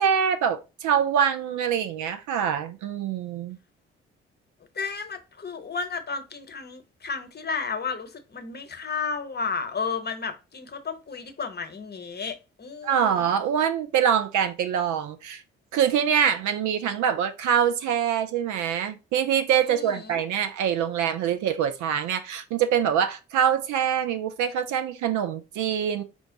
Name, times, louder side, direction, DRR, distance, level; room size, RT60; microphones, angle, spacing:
voice 1, 0.0-3.6 12.8-15.4 15.7-26.0, right 8 dB, 65° right, 0.6 m, -24 dB
voice 2, 4.7-13.3 19.6-20.2, left 5 dB, 30° left, 0.9 m, -33 dB
5.0 x 2.4 x 3.7 m
hypercardioid pair, 40°, 32 cm